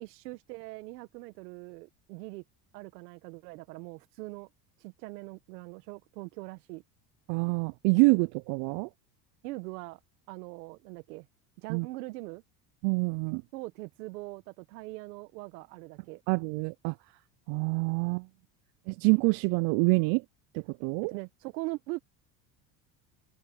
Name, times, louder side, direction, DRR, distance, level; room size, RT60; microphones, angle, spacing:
voice 1, 0.0-2.4 2.7-4.5 4.8-6.8 9.4-10.0 10.3-11.3 11.6-12.4 13.5-16.2 21.0-22.0, right 22 dB, 80° right, 1.7 m, -41 dB
voice 2, 7.3-8.9 11.7-11.9 12.8-13.4 16.3-17.0 17.5-18.3 18.9-20.2 20.5-21.1, right 31 dB, 65° right, 0.5 m, -26 dB
open air
supercardioid pair, 85°, 47 cm